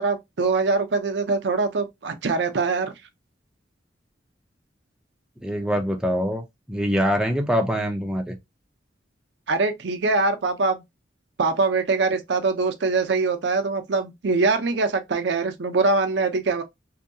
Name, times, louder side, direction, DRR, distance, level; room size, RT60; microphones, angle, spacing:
voice 1, 0.0-2.9 9.5-10.8 11.4-16.6, right 3 dB, 70° right, 0.5 m, -23 dB
voice 2, 5.4-6.4 6.7-8.3, equal, 5° right, 0.4 m, -24 dB
2.7 x 2.2 x 2.6 m
head